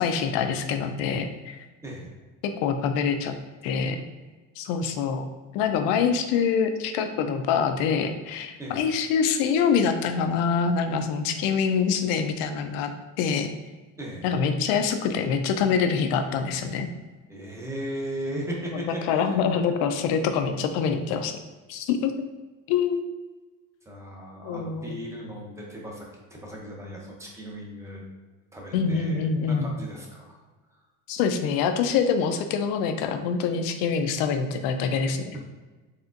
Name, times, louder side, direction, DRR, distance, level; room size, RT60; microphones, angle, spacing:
voice 1, 0.0-1.6 2.4-3.4 3.6-4.0 4.6-5.3 5.5-12.9 13.2-13.5 14.2-16.9 18.9-21.3 21.7-22.3 22.7-23.0 24.4-24.9 28.7-29.7 31.1-35.4, left 6 dB, 80° left, 7 dB, 0.6 m, -25 dB
voice 2, 17.3-19.4 23.9-28.0 28.5-30.4 30.7-30.8, right 1 dB, 10° right, -2 dB, 0.6 m, -37 dB
4.2 x 3.4 x 2.5 m, 1.3 s
cardioid pair, 155°, 34 cm